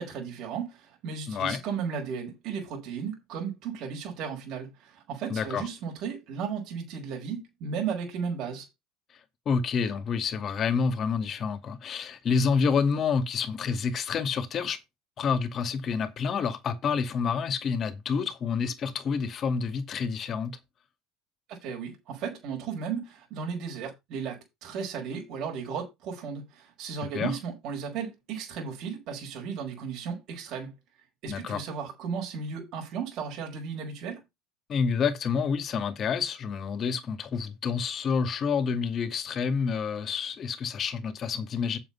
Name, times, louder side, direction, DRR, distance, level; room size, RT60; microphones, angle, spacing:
voice 1, 0.0-8.7 21.5-30.7 31.2-34.2, right 6 dB, 55° right, 4.9 m, -35 dB
voice 2, 1.3-1.6 5.3-5.6 9.5-14.8 15.2-20.6 27.1-27.3 31.3-31.6 34.7-41.8, left 6 dB, 40° left, 2.3 m, -28 dB
7.9 x 7.0 x 5.7 m
hypercardioid pair, 80°, 0 cm